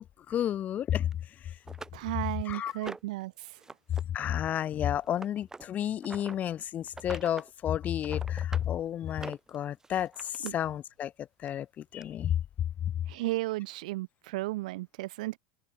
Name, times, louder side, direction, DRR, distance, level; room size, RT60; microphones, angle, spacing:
voice 1, 0.0-1.6 2.4-2.9 4.1-12.4 12.8-12.9, left 10 dB, 35° left, 0.9 m, -31 dB
sound 1, 1.1-1.2 1.7-3.2 3.6-4.0 4.3-6.4 6.9-7.5 7.8-8.7 9.1-10.5 11.5-11.6 12.0-12.1, right 3 dB, 15° right, 2.3 m, -45 dB
voice 2, 1.9-3.3 10.4-10.5 13.1-15.4, right 19 dB, 65° right, 2.8 m, -34 dB
hypercardioid pair, 85°, 4 cm